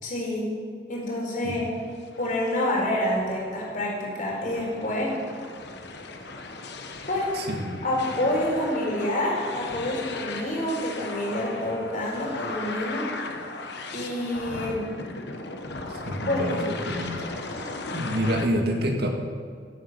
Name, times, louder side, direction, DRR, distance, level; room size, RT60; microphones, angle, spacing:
voice 1, 0.0-0.5 0.9-1.7 2.2-5.1 7.1-7.3 7.8-13.1 13.9-14.8 16.3-16.7, left 1 dB, 50° left, -3 dB, 4.3 m, -27 dB
sound 1, 1.6-18.5, left 3 dB, 65° left, 1.2 m, -37 dB
voice 2, 7.3-7.8 15.9-16.6 16.9-17.3 17.6-19.1, equal, 65° right, 2 dB, 2.0 m, -28 dB
16.5 x 8.3 x 6.5 m, 2.1 s
head